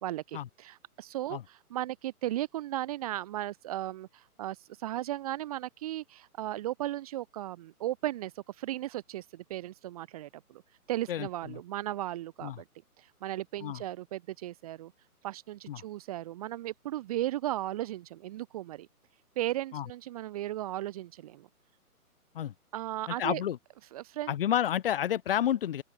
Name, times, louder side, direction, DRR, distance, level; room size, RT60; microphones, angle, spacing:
voice 1, 0.0-10.6 10.9-12.6 13.0-14.9 15.2-18.9 19.4-21.5 22.7-23.4 23.9-24.3, right 14 dB, 25° right, 2.4 m, -36 dB
voice 2, 11.1-11.5 12.4-12.6 13.6-13.8 15.7-15.8 19.7-19.9 22.3-22.5 23.1-23.6 24.3-25.8, left 10 dB, 35° left, 7.9 m, -30 dB
open air
hypercardioid pair, 165°, 46 cm